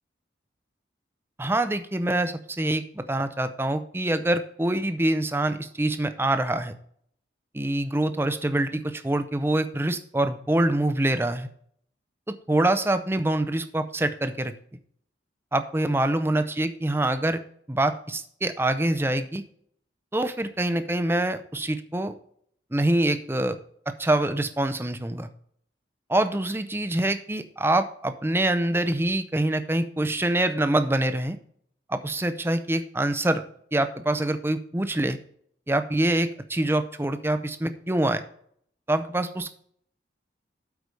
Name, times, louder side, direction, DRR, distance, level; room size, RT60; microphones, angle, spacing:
voice 1, 1.4-6.7 7.5-11.5 12.3-14.5 15.5-17.4 17.7-19.4 20.1-22.1 22.7-23.6 23.9-25.3 26.1-31.4 31.9-33.4 33.7-35.2 35.7-38.2 38.9-39.6, right 1 dB, 10° right, 10 dB, 0.5 m, -25 dB
8.1 x 4.8 x 5.2 m, 0.64 s
head